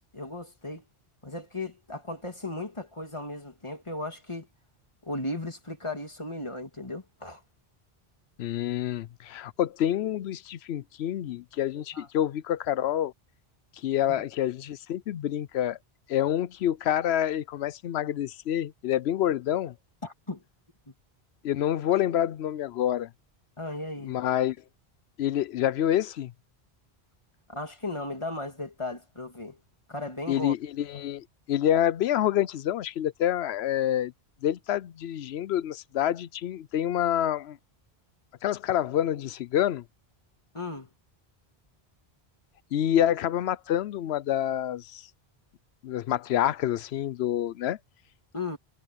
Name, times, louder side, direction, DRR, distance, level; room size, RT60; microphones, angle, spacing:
voice 1, 0.1-0.8 1.2-4.5 5.0-7.4 11.9-12.1 14.1-14.2 20.0-20.4 20.9-21.0 23.6-24.2 27.5-29.6 29.9-30.5 40.5-40.9 48.3-48.6, left 2 dB, 30° left, 2.6 m, -36 dB
voice 2, 8.4-13.1 13.8-15.8 16.1-19.7 21.4-23.1 24.0-24.6 25.2-26.3 30.3-34.1 34.4-37.6 38.4-39.8 42.7-45.0 45.8-47.8, left 11 dB, 80° left, 0.8 m, -27 dB
omnidirectional pair, 1.1 m